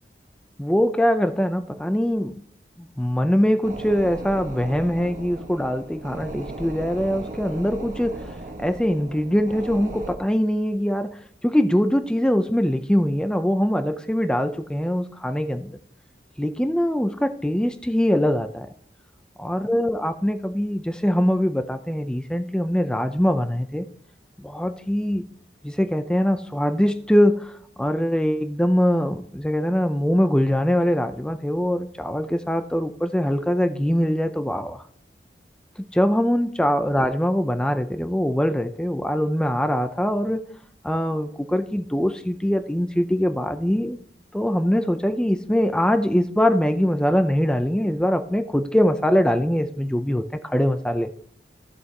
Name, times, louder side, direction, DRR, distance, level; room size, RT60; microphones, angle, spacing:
voice 1, 0.6-2.3 2.8-15.7 16.4-18.7 19.4-23.9 24.4-25.2 25.6-34.8 35.9-40.4 40.8-44.0 44.3-51.1, equal, 5° left, 9 dB, 0.4 m, -22 dB
sound 1, 3.6-10.2, right 2 dB, 45° right, 1.3 m, -37 dB
14.5 x 7.8 x 2.8 m, 0.63 s
head